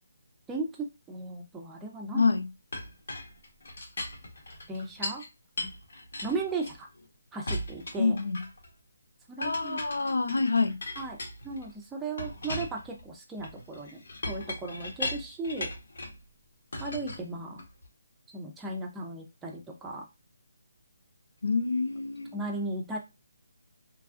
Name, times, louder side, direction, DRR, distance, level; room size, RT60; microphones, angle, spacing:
voice 1, 0.5-2.2 4.7-5.2 5.6-5.7 6.2-6.9 7.3-8.2 9.3-9.8 11.0-11.2 11.4-15.7 16.8-17.6 18.3-20.0 22.3-23.0, right 3 dB, 10° right, 0.5 m, -36 dB
voice 2, 2.1-2.5 8.0-8.4 9.4-10.8 21.4-22.4, left 4 dB, 85° left, 0.5 m, -27 dB
Chink clink, 2.7-5.3 5.6-7.1 7.5-8.7 9.4-11.7 12.2-16.2 16.7-17.9, left 2 dB, 70° left, 1.1 m, -38 dB
3.1 x 2.3 x 2.4 m
hypercardioid pair, 165°, 0 cm